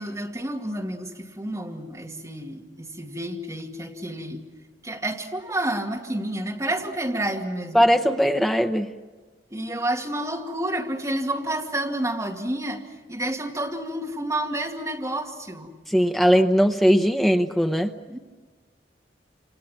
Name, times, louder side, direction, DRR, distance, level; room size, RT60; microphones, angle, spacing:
voice 1, 0.0-4.5 4.8-7.8 9.5-15.7 18.1-18.2, right 1 dB, 15° right, 0 dB, 2.4 m, -30 dB
voice 2, 7.7-8.9 15.9-17.9, equal, ahead, 6 dB, 0.8 m, -19 dB
28.0 x 27.5 x 6.1 m, 1.3 s
head